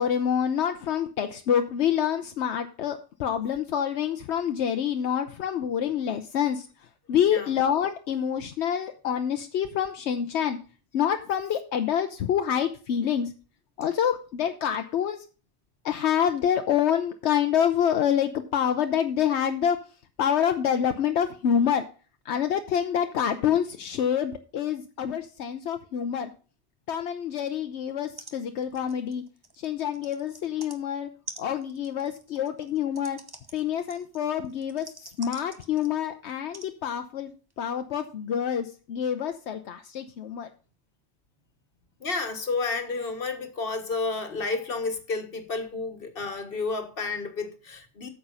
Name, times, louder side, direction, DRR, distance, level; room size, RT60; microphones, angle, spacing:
voice 1, 0.0-6.7 7.1-10.6 10.9-13.3 13.8-15.2 15.8-19.8 20.2-21.8 22.2-26.3 26.9-29.2 29.6-31.1 31.4-33.2 33.5-40.5, left 8 dB, 80° left, 1.0 m, -27 dB
sound 1, 27.9-28.0 28.2-28.4 28.6-30.8 31.3-36.0 36.5-36.7 37.5-37.6, right 2 dB, 20° right, 0.9 m, -46 dB
voice 2, 42.0-48.1, left 3 dB, 55° left, 1.7 m, -31 dB
8.8 x 6.9 x 5.4 m
omnidirectional pair, 1.1 m